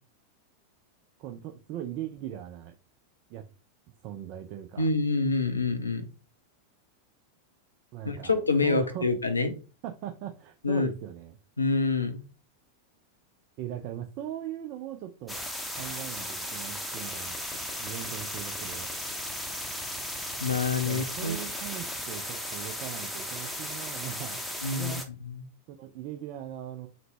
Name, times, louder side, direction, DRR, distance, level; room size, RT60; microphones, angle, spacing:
voice 1, 1.2-2.7 3.3-3.4 4.0-4.9 7.9-8.3 8.6-9.1 9.8-11.4 13.6-15.4 15.7-18.9 20.8-24.4 24.7-25.0 25.7-26.9, right 11 dB, 40° right, 4 dB, 0.4 m, -39 dB
voice 2, 4.8-6.0 8.0-9.5 10.6-10.9 11.6-12.2 20.4-21.4 24.6-25.4, left 3 dB, 80° left, 7 dB, 0.5 m, -27 dB
sound 1, 15.3-25.0, equal, 5° left, 0.7 m, -36 dB
3.8 x 2.1 x 3.4 m, 0.32 s
figure-of-eight pair, 90°, 0 cm